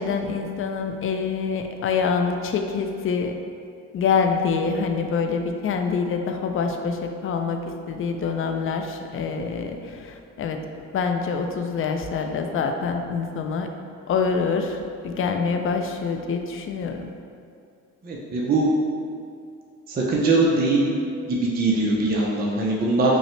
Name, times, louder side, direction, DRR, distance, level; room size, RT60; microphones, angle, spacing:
voice 1, 0.0-3.3 3.9-10.6 10.9-13.7 14.1-17.1, left 5 dB, 45° left, 5 dB, 0.4 m, -26 dB
voice 2, 18.0-18.7 19.9-20.8 21.3-23.2, right 2 dB, 30° right, -3 dB, 0.5 m, -21 dB
5.4 x 2.0 x 3.1 m, 2.4 s
cardioid pair, 90°, 30 cm